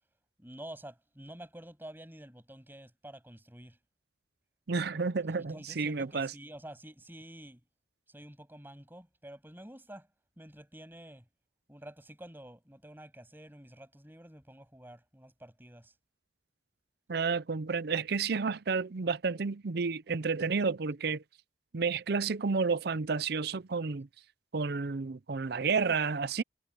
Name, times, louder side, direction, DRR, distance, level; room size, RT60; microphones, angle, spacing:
voice 1, 0.4-3.8 5.3-7.6 8.1-10.1 10.4-11.2 11.7-15.9, right 1 dB, 10° right, 8.0 m, -49 dB
voice 2, 4.7-6.3 17.1-21.2 21.7-24.1 24.5-26.4, right 4 dB, 55° right, 0.6 m, -31 dB
head